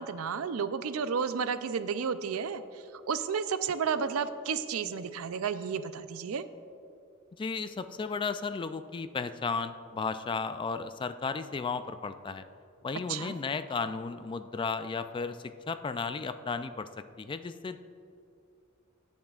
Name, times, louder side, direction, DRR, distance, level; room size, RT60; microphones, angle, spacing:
voice 1, 0.0-2.6 3.1-6.4 13.1-13.3, right 6 dB, 90° right, 12 dB, 0.5 m, -32 dB
voice 2, 7.4-12.4 12.8-15.4 15.7-16.9 17.2-17.8, left 4 dB, 25° left, 11 dB, 0.3 m, -34 dB
19.0 x 7.2 x 2.4 m, 2.5 s
head